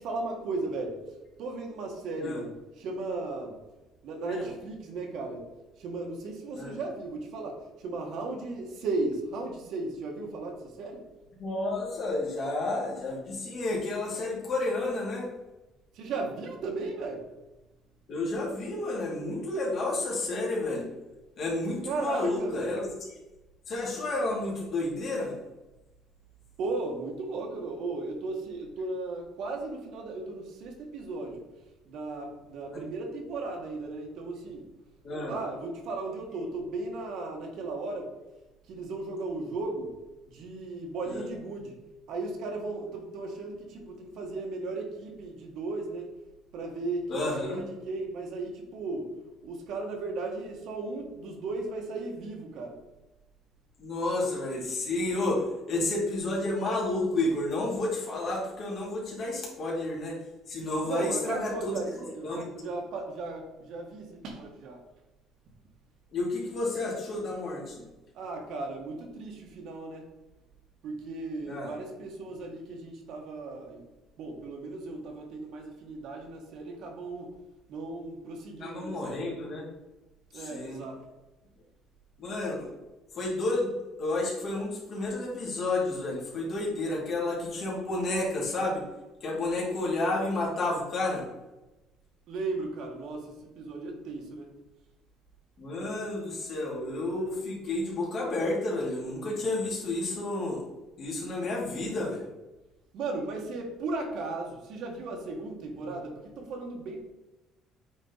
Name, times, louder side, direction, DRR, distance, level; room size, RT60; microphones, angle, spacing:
voice 1, 0.0-3.6 4.0-5.5 5.8-11.1 15.9-17.3 21.8-22.7 26.6-31.4 31.8-34.7 35.1-38.1 38.7-40.0 40.2-41.8 42.1-46.1 46.5-52.8 60.9-64.8 68.1-70.1 70.8-73.8 74.2-77.4 77.7-79.4 80.3-81.0 92.3-94.5 102.9-107.1, right 3 dB, 60° right, 2 dB, 1.6 m, -36 dB
voice 2, 11.4-15.3 18.1-20.9 21.4-22.9 23.7-25.4 35.0-35.4 41.1-41.2 47.1-47.6 53.8-60.2 60.5-61.8 62.2-62.4 66.1-67.8 71.4-71.7 78.6-79.7 80.3-80.8 82.2-82.7 83.1-83.7 84.0-88.8 89.2-91.2 95.6-100.6 101.0-102.2 105.8-105.9, left 2 dB, 40° left, -3 dB, 2.7 m, -31 dB
8.6 x 4.4 x 4.0 m, 1.0 s
cardioid pair, 150°, 0 cm